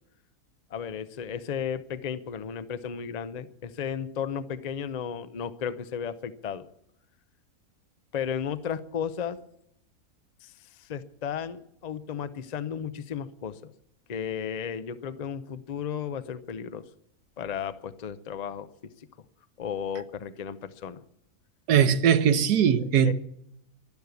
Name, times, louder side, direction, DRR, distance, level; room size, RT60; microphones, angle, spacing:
voice 1, 0.7-6.6 8.1-9.4 10.4-13.7 14.1-16.9 17.4-18.7 19.0-19.1 19.6-21.0 22.8-23.1, left 8 dB, 75° left, 0.3 m, -34 dB
voice 2, 21.7-23.1, right 8 dB, 85° right, 1.4 m, -20 dB
12.0 x 11.5 x 8.1 m
omnidirectional pair, 1.7 m